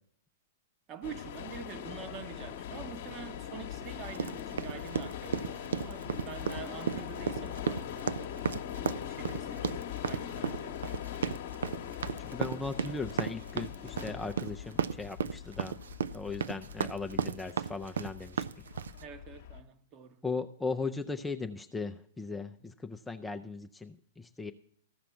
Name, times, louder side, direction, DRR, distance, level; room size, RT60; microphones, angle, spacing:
voice 1, 0.9-8.3 9.0-11.2 19.0-20.2, right 8 dB, 30° right, 1.1 m, -46 dB
sound 1, 1.0-19.6, left 10 dB, 55° left, 1.0 m, -41 dB
sound 2, 4.1-19.0, right 7 dB, 70° right, 0.4 m, -34 dB
voice 2, 12.2-15.8 16.1-18.5 20.2-24.5, left 4 dB, 5° left, 0.5 m, -38 dB
14.5 x 6.0 x 5.6 m
figure-of-eight pair, 110°, 0 cm